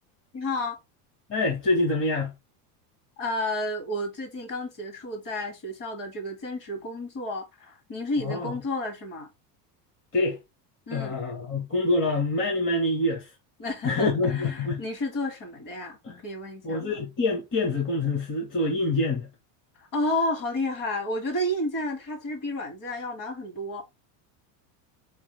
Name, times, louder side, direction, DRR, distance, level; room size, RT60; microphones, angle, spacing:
voice 1, 0.3-0.8 3.2-9.3 10.9-11.2 13.6-17.0 19.8-23.8, left 1 dB, 40° left, 2.0 m, -31 dB
voice 2, 1.3-2.3 8.2-8.5 10.1-10.4 10.9-13.3 13.8-14.8 16.0-16.2 16.6-19.3, left 2 dB, 25° left, 1.0 m, -26 dB
4.6 x 3.2 x 3.2 m
supercardioid pair, 145°, 50 cm